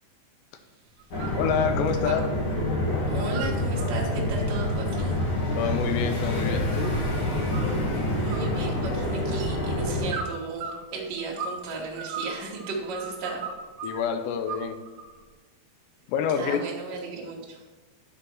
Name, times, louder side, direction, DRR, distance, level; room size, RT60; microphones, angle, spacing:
sound 1, 1.0-1.4 1.7-2.7 3.0-3.9 4.3-7.1 7.5-8.0 8.3-9.3 10.1-11.6 11.9-14.0 14.5-15.2, right 5 dB, 60° right, 2.3 m, -38 dB
sound 2, 1.1-10.1, left 1 dB, 60° left, 1.3 m, -27 dB
voice 1, 1.4-2.3 5.6-7.0 13.8-14.8 16.1-16.6, left 7 dB, 85° left, 8 dB, 2.9 m, -27 dB
voice 2, 3.1-5.2 8.2-13.4 16.3-17.6, right 3 dB, 85° right, -3 dB, 0.9 m, -35 dB
10.0 x 4.3 x 6.1 m, 1.2 s
omnidirectional pair, 4.9 m